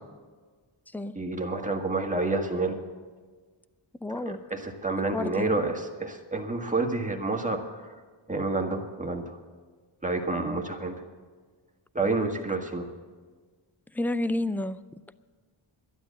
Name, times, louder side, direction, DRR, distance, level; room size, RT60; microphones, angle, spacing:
voice 1, 1.1-2.8 4.5-7.9 8.3-9.4 10.0-10.9 11.9-12.9, right 3 dB, 15° right, 2 dB, 1.7 m, -29 dB
voice 2, 4.0-4.4 5.1-5.5 13.9-14.8, left 1 dB, 5° left, 14 dB, 0.4 m, -30 dB
12.0 x 11.0 x 8.5 m, 1.4 s
wide cardioid pair, 85°, 50 cm